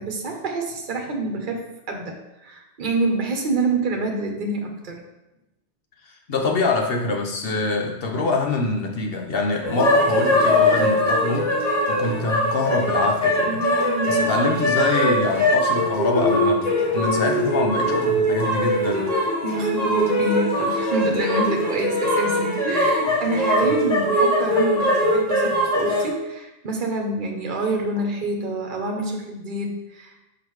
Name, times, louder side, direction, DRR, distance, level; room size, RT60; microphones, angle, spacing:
voice 1, 0.0-5.0 13.5-14.3 19.4-30.2, right 2 dB, 45° right, 2 dB, 1.0 m, -27 dB
voice 2, 6.0-11.5 11.9-13.6 14.0-19.1, left 3 dB, 55° left, 1 dB, 1.0 m, -25 dB
sound 1, 9.6-26.1, left 1 dB, 35° left, 1.3 m, -21 dB
6.0 x 5.3 x 3.1 m, 0.95 s
omnidirectional pair, 1.2 m